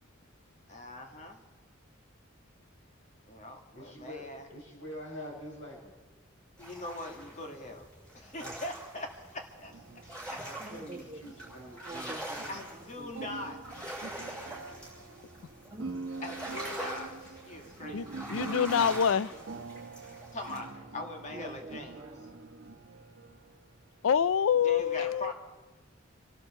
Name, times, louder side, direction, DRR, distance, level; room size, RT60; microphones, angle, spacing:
voice 1, 0.7-1.4 3.3-4.5 6.6-7.9 8.1-9.7 10.0-10.2 12.5-13.9 16.2-18.3 20.3-22.0 24.6-25.3, left 2 dB, 40° left, 2.0 m, -42 dB
voice 2, 3.7-5.9 8.4-8.6 10.4-12.2, equal, 70° left, 4.8 m, -45 dB
sound 1, 6.6-20.6, right 1 dB, 5° left, 6.3 m, -44 dB
sound 2, 9.5-24.2, right 3 dB, 90° right, 1.0 m, -45 dB
voice 3, 10.5-11.2 11.8-13.1 15.7-16.0 21.3-22.4, right 2 dB, 20° right, 1.6 m, -46 dB
voice 4, 17.9-19.3 24.0-25.3, left 8 dB, 85° left, 0.4 m, -26 dB
26.5 x 12.5 x 4.3 m
head